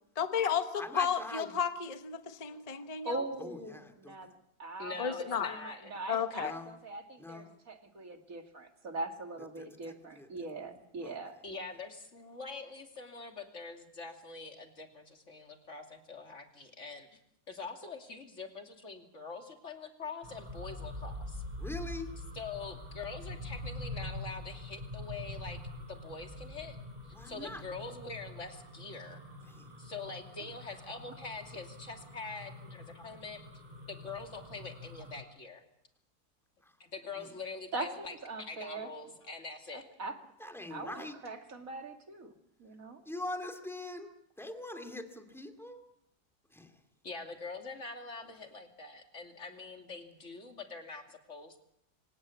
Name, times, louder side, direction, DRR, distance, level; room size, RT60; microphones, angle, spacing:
voice 1, 0.2-3.2 5.0-5.5 6.1-6.5, left 7 dB, 25° left, 8 dB, 1.1 m, -33 dB
voice 2, 0.8-1.6 3.4-4.3 6.4-6.8 7.2-7.5 9.6-10.5 11.0-11.2 21.6-22.1 27.1-27.6 29.5-29.7 36.6-36.8 37.2-37.3 40.4-41.2 43.1-44.1 44.4-45.8 46.5-46.8, left 1 dB, ahead, 5 dB, 2.3 m, -43 dB
voice 3, 2.7-4.3 4.6-11.4 37.7-38.9 39.7-40.2 40.4-42.3 42.6-43.0, right 2 dB, 55° right, 5 dB, 2.7 m, -41 dB
voice 4, 4.8-5.9 10.6-10.7 11.4-17.1 17.5-21.4 22.3-25.6 25.9-26.8 27.0-29.2 29.8-33.6 33.9-35.6 36.8-39.8 47.0-51.6, left 4 dB, 45° left, 4 dB, 3.0 m, -44 dB
sound 1, 20.2-35.2, left 1 dB, 25° right, 4.8 m, -45 dB
26.0 x 16.5 x 8.4 m, 0.76 s
omnidirectional pair, 1.8 m